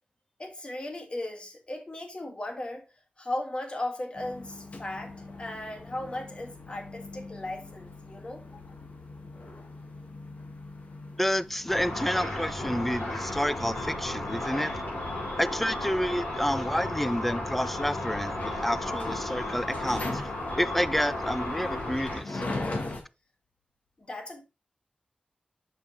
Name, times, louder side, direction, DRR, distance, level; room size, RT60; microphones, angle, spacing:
voice 1, 0.4-2.8 3.2-8.7 24.0-24.4, left 1 dB, 35° left, 1.7 m, -37 dB
sound 1, 4.1-23.0, left 2 dB, 55° left, 1.6 m, -42 dB
voice 2, 11.2-14.8 15.4-18.3 18.6-20.2 20.6-22.4, equal, 5° left, 0.4 m, -29 dB
Car / Traffic noise roadway noise / Engine, 11.7-22.2, left 1 dB, 90° left, 4.4 m, -34 dB
6.8 x 5.3 x 3.3 m
wide cardioid pair, 95°, 3 cm